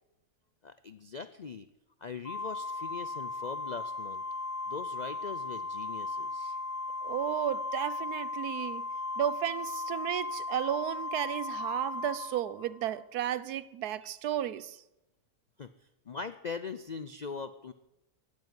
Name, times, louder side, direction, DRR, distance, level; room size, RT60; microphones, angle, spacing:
voice 1, 0.6-1.7 2.0-4.2 4.7-6.6 14.0-14.1 14.5-14.6 15.6-15.7 16.1-17.7, left 5 dB, 90° left, 0.3 m, -41 dB
Organ, 2.3-13.0, left 3 dB, 45° left, 1.0 m, -37 dB
voice 2, 7.0-8.8 9.2-14.8, right 11 dB, 80° right, 1.3 m, -33 dB
15.5 x 9.6 x 9.6 m
omnidirectional pair, 1.6 m